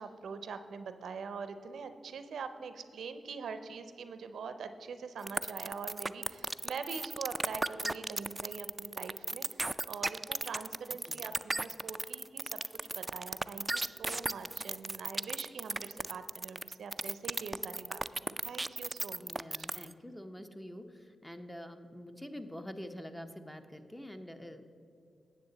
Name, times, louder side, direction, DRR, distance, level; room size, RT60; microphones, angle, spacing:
voice 1, 0.0-12.6 12.9-19.7, right 5 dB, 80° right, 10 dB, 0.5 m, -44 dB
sound 1, 5.3-19.9, right 2 dB, 30° right, 0.3 m, -35 dB
voice 2, 19.2-24.7, equal, 10° left, 7 dB, 0.8 m, -46 dB
9.6 x 7.5 x 4.0 m, 2.6 s
supercardioid pair, 45°, 0 cm